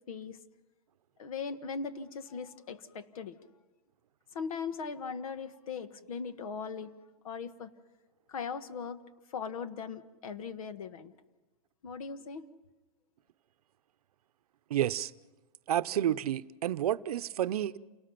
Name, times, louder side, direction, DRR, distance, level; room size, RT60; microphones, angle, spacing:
voice 1, 0.1-0.4 1.2-3.4 4.3-6.9 7.2-7.7 8.3-9.0 9.3-11.1 11.8-12.5, left 5 dB, 70° left, 1.5 m, -39 dB
voice 2, 14.7-15.1 15.7-17.8, right 11 dB, 80° right, 0.7 m, -30 dB
28.5 x 19.0 x 5.9 m
supercardioid pair, 180°, 19 cm